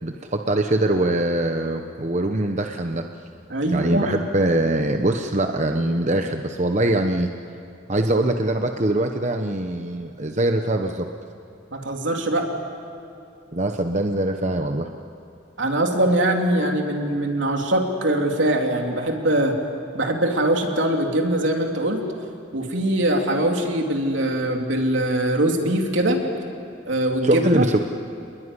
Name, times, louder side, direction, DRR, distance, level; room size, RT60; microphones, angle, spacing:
voice 1, 0.0-3.0 3.7-7.3 7.9-11.1 13.5-14.9 27.2-27.8, right 1 dB, 40° right, 5 dB, 1.0 m, -22 dB
voice 2, 3.5-4.1 11.7-12.5 15.6-19.5 19.9-22.0 22.5-26.2 26.9-27.6, right 1 dB, 80° right, 2 dB, 3.3 m, -22 dB
28.0 x 21.0 x 10.0 m, 2.7 s
head